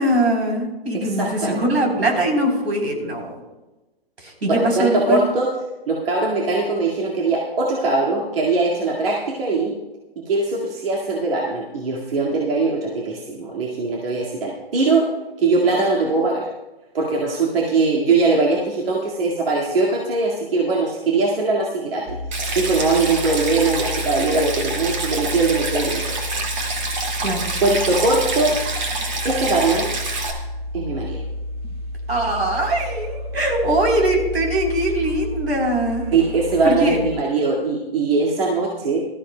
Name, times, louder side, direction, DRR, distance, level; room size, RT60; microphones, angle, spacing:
voice 1, 0.0-3.3 4.2-5.2 27.2-27.5 32.1-36.1 36.6-37.0, right 1 dB, 90° right, 1 dB, 3.8 m, -21 dB
voice 2, 0.9-1.6 4.5-5.5 5.9-9.8 10.2-15.1 15.4-16.5 16.9-22.2 22.6-26.2 27.6-28.6 29.2-29.9 30.7-31.2 36.1-39.1, right 3 dB, 65° right, -3 dB, 2.1 m, -21 dB
sound 1, 22.1-37.1, left 2 dB, 20° right, 1.5 m, -31 dB
Stream, 22.3-30.3, right 3 dB, 45° right, 2.1 m, -27 dB
19.5 x 13.5 x 2.2 m, 1.1 s
hypercardioid pair, 150°, 31 cm